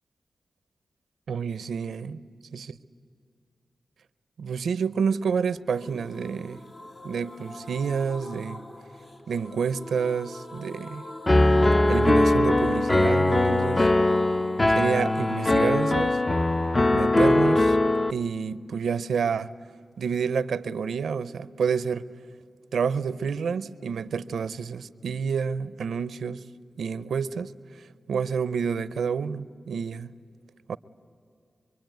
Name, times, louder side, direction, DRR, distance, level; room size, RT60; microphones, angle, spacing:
voice 1, 1.3-2.2 2.5-2.7 4.4-6.6 7.0-8.6 9.3-11.0 11.9-13.9 14.7-16.2 16.9-17.8 18.1-19.5 20.0-22.1 22.7-26.4 26.8-27.5 27.8-30.1 30.7-30.8, right 6 dB, 90° right, 0.5 m, -29 dB
sound 1, 5.7-19.3 19.6-19.7 19.9-20.0, left 1 dB, 70° left, 3.5 m, -45 dB
Piano, 11.3-18.1, left 2 dB, 30° left, 0.5 m, -21 dB
25.0 x 23.5 x 9.2 m
cardioid pair, 45°, 0 cm